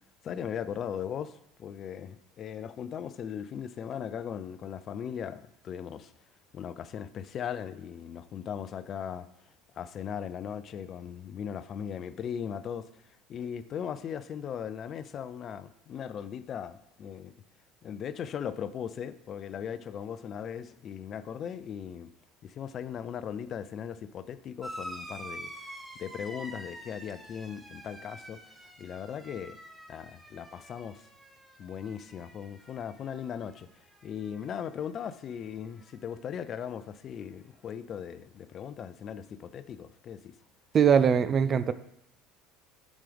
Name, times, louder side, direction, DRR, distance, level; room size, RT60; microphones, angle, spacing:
voice 1, 0.2-6.1 6.5-9.3 9.7-17.3 17.8-22.1 22.4-25.5 26.0-28.4 28.8-29.6 29.9-31.1 31.6-33.7 34.0-40.4, left 8 dB, 45° left, 0.4 m, -38 dB
sound 1, 24.6-33.6 33.9-34.7 35.8-35.9, equal, 10° right, 1.0 m, -47 dB
voice 2, 40.7-41.7, right 7 dB, 40° right, 0.4 m, -21 dB
7.4 x 6.2 x 3.4 m
hypercardioid pair, 70°, 0 cm